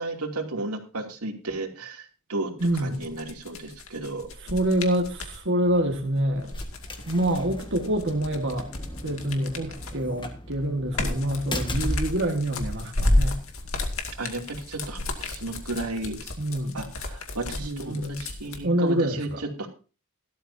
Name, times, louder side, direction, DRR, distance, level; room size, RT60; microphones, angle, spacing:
voice 1, 0.0-4.3 14.2-16.3 16.7-19.7, right 2 dB, 85° right, 2 dB, 2.8 m, -33 dB
sound 1, 2.6-5.4 6.3-10.1 10.5-18.6, left 1 dB, 65° left, 2.3 m, -31 dB
voice 2, 2.6-3.1 4.4-6.5 7.1-8.7 9.0-13.4 16.4-16.8 17.6-18.1 18.6-19.4, right 1 dB, 55° right, 2 dB, 1.7 m, -26 dB
sound 2, 5.5-15.2, left 1 dB, 20° left, 1.6 m, -39 dB
16.5 x 12.5 x 2.8 m, 0.35 s
head